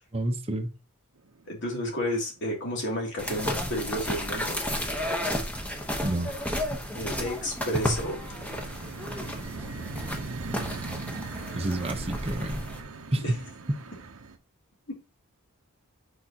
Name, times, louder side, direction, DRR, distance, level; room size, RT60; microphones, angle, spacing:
voice 1, 0.1-0.7 6.0-6.3 11.6-12.6 13.1-13.4 13.7-13.8, right 1 dB, 25° right, 0.8 m, -28 dB
sound 1, 1.3-1.8 2.1-2.9 3.2-14.4, right 3 dB, 65° right, 0.8 m, -41 dB
voice 2, 1.5-4.6 6.9-8.2 13.2-13.3 14.9-15.0, equal, 55° left, 2.7 m, -31 dB
sound 2, 3.2-12.8, left 1 dB, 5° left, 1.0 m, -33 dB
8.4 x 5.0 x 2.9 m
head